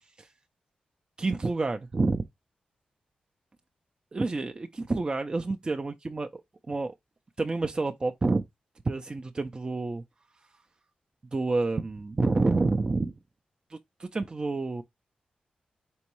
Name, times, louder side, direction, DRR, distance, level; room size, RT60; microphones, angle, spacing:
voice 1, 1.2-2.2 4.1-6.3 6.7-6.9 7.4-8.4 8.9-10.0 11.3-13.1 13.7-14.8, right 3 dB, 30° right, 0.4 m, -28 dB
4.4 x 3.0 x 2.9 m
cardioid pair, 75°, 3 cm